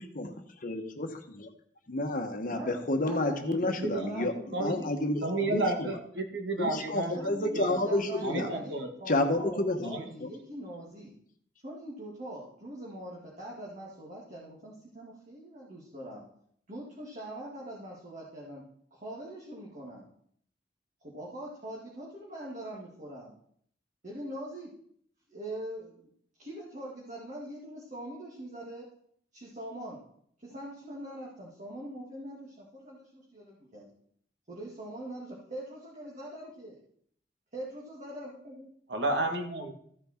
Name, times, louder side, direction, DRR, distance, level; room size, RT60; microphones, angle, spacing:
voice 1, 0.0-1.5 1.9-5.9 6.6-8.5 9.1-10.3, left 1 dB, 50° left, 5 dB, 1.1 m, -31 dB
voice 2, 2.5-5.8 7.1-8.7 9.0-11.1 11.6-16.2 16.7-18.6 18.9-20.1 21.0-23.3 24.0-24.7 25.3-26.1 26.4-28.9 29.3-30.0 30.4-33.9 34.5-36.8 37.5-38.7, right 1 dB, 45° right, -5 dB, 2.2 m, -42 dB
voice 3, 3.4-4.8 5.2-7.1 7.4-7.7 8.2-8.9 9.9-10.0 38.9-39.7, right 2 dB, 80° right, 4 dB, 1.8 m, -32 dB
14.5 x 5.9 x 4.4 m, 0.65 s
head